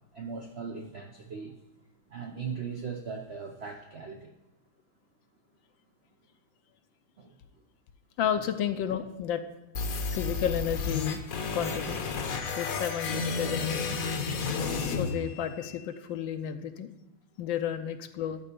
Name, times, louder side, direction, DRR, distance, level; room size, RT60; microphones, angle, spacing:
voice 1, 0.1-1.5 2.1-4.3 7.2-7.4, right 5 dB, 80° right, 3 dB, 0.5 m, -39 dB
voice 2, 8.2-9.4 10.1-11.2 11.5-12.1 12.4-14.0 14.9-16.9 17.4-18.4, left 9 dB, 75° left, 9 dB, 1.3 m, -32 dB
sound 1, 9.7-15.8, left 4 dB, 55° left, 1.1 m, -32 dB
12.5 x 4.2 x 6.7 m, 0.97 s
omnidirectional pair, 2.2 m